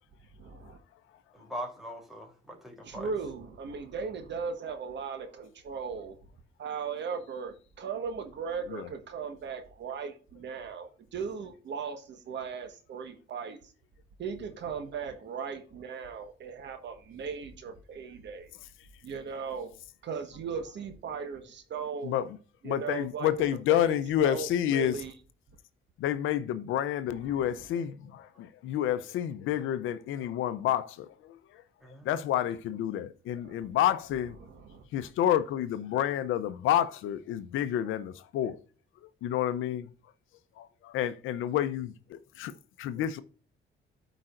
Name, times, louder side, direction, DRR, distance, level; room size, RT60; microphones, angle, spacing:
voice 1, 0.4-0.8 2.8-6.2 6.6-13.7 14.2-18.5 19.0-19.7 20.0-22.1 22.6-25.1 27.3-27.7 33.4-33.7 34.4-35.1, right 5 dB, 65° right, 1.4 m, -38 dB
voice 2, 1.3-3.1 31.8-32.1, equal, ahead, 3.2 m, -41 dB
voice 3, 22.0-22.4 22.6-25.0 26.0-31.6 32.0-34.4 34.9-38.6 39.2-39.9 40.6-42.5 42.8-43.2, left 11 dB, 85° left, 0.7 m, -29 dB
13.0 x 5.0 x 2.5 m
cardioid pair, 90°, 20 cm